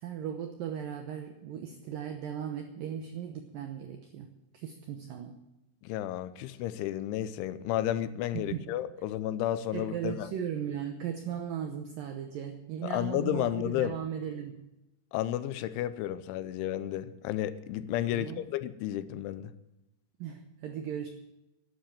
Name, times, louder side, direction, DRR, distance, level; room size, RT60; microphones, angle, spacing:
voice 1, 0.0-4.3 4.5-5.4 8.3-8.7 9.7-14.6 18.1-18.4 20.2-21.1, right 9 dB, 80° right, 6 dB, 1.9 m, -37 dB
voice 2, 5.8-10.3 12.9-14.0 15.1-19.5, left 12 dB, 85° left, 13 dB, 3.2 m, -32 dB
11.5 x 11.0 x 8.9 m, 0.93 s
omnidirectional pair, 5.3 m